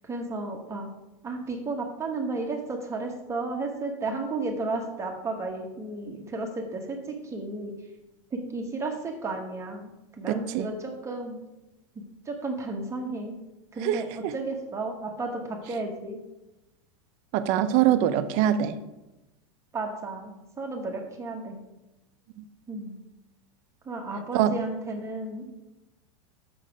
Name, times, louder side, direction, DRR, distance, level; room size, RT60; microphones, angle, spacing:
voice 1, 0.0-0.9 1.2-7.7 8.3-9.9 10.2-11.4 12.3-13.3 13.7-16.2 19.7-21.6 22.7-23.0 23.8-25.5, right 3 dB, 15° right, 2 dB, 1.1 m, -33 dB
voice 2, 10.3-10.7 13.8-14.3 17.3-18.8 24.3-24.5, right 11 dB, 50° right, 12 dB, 0.6 m, -24 dB
6.5 x 6.2 x 5.0 m, 0.99 s
supercardioid pair, 135°, 17 cm